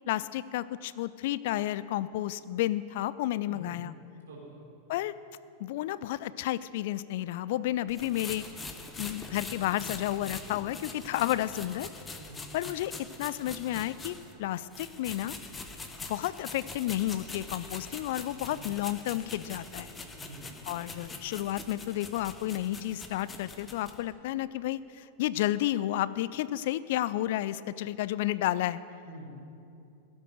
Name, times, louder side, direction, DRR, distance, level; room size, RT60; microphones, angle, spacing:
voice 1, 0.1-3.9 4.9-5.1 5.6-8.5 9.0-11.9 12.5-15.3 16.1-19.9 20.7-28.8, left 14 dB, 50° left, 17 dB, 0.3 m, -31 dB
voice 2, 4.3-4.6 10.1-10.4 12.2-12.4 18.4-18.6 20.2-20.6 29.0-29.3, right 2 dB, 65° right, -3 dB, 3.6 m, -47 dB
sound 1, 7.9-14.3 14.7-24.0, left 3 dB, 15° left, 1.3 m, -43 dB
16.0 x 8.0 x 6.5 m, 2.7 s
figure-of-eight pair, 90°, 0 cm